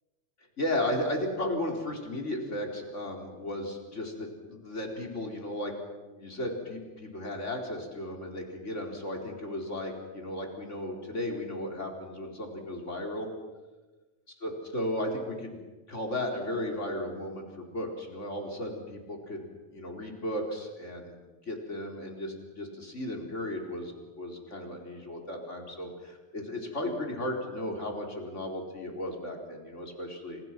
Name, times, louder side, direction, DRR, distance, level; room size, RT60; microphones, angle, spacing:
voice 1, 0.6-5.7 6.1-13.3 14.4-15.6 15.9-30.4, left 1 dB, 90° left, 2 dB, 4.7 m, -35 dB
29.5 x 28.5 x 6.0 m, 1.2 s
omnidirectional pair, 1.2 m